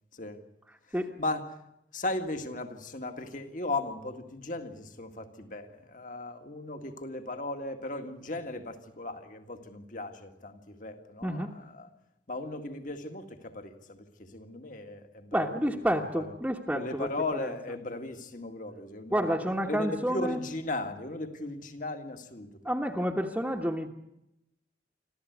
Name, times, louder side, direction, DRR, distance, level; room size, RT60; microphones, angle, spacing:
voice 1, 1.2-1.6 1.9-11.9 12.3-15.8 16.1-16.3 16.7-19.3 19.6-22.6, left 2 dB, 45° left, 2.0 m, -37 dB
voice 2, 11.2-11.5 15.3-17.1 19.1-20.4 22.6-23.9, equal, 10° right, 1.3 m, -29 dB
26.0 x 14.5 x 9.4 m
head